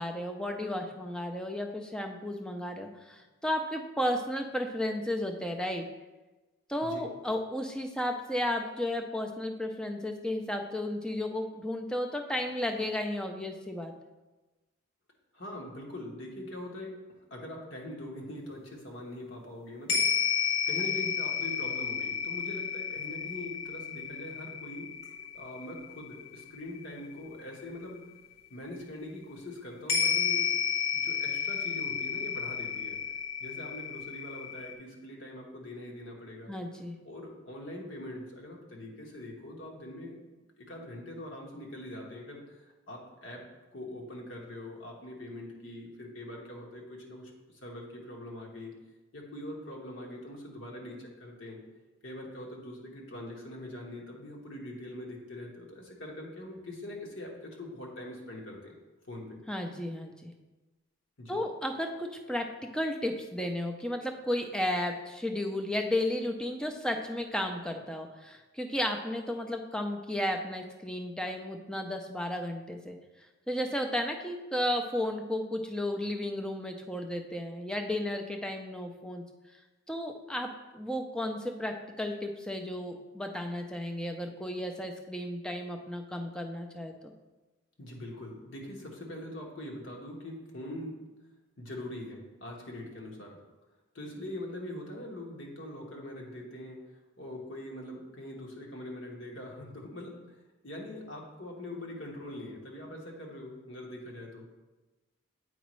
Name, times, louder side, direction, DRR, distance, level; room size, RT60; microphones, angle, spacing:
voice 1, 0.0-5.9 6.7-13.9 36.5-37.0 59.5-60.3 61.3-62.4 62.7-73.0 73.5-79.2 79.9-80.5 80.7-87.1, left 1 dB, 5° left, 3 dB, 0.4 m, -33 dB
voice 2, 15.3-17.0 17.3-20.3 20.7-24.9 25.3-28.0 28.5-30.5 30.9-33.0 33.4-36.5 37.0-40.2 40.6-43.4 43.7-48.7 49.1-51.6 52.0-58.7 59.1-59.4 61.2-61.4 87.8-91.0 91.6-93.4 93.9-100.4 100.6-104.5, left 1 dB, 65° left, -1 dB, 1.3 m, -43 dB
sound 1, 19.9-28.0 29.9-34.7, left 7 dB, 45° left, 1.0 m, -32 dB
8.0 x 5.0 x 3.1 m, 1.2 s
head